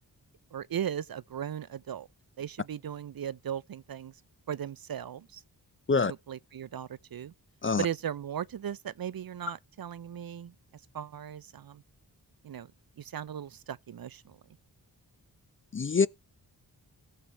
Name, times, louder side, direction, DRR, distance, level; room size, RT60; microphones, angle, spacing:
voice 1, 0.5-2.1 2.4-4.1 4.5-5.4 6.0-7.3 7.8-10.5 10.9-11.8 12.4-12.7 13.0-14.4, right 9 dB, 60° right, 0.6 m, -37 dB
voice 2, 15.7-16.1, left 4 dB, 30° left, 0.5 m, -25 dB
17.0 x 6.7 x 3.0 m
wide cardioid pair, 65°, 40 cm